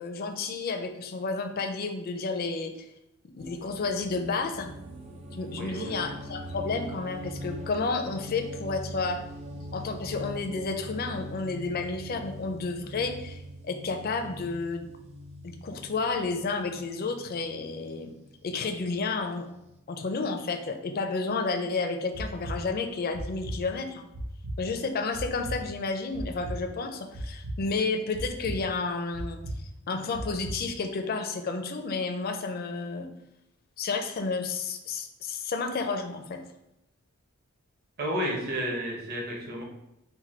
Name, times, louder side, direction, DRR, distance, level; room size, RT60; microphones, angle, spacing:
voice 1, 0.0-2.7 3.3-4.7 5.3-9.2 9.7-14.9 15.4-18.1 18.4-19.5 19.9-24.1 24.6-29.4 29.9-33.1 33.8-36.4, left 4 dB, 45° left, 6 dB, 0.4 m, -31 dB
sound 1, 3.4-19.8, equal, 30° right, 0.4 m, -42 dB
voice 2, 5.5-6.1 38.0-39.6, equal, 45° right, -2 dB, 0.9 m, -32 dB
sound 2, 22.1-22.5 23.1-23.5 24.1-24.5 25.1-25.5 26.1-26.5 27.1-27.5 28.1-28.5 29.1-29.5 30.1-30.5, right 1 dB, 85° right, 0.8 m, -35 dB
4.5 x 2.2 x 4.2 m, 0.85 s
head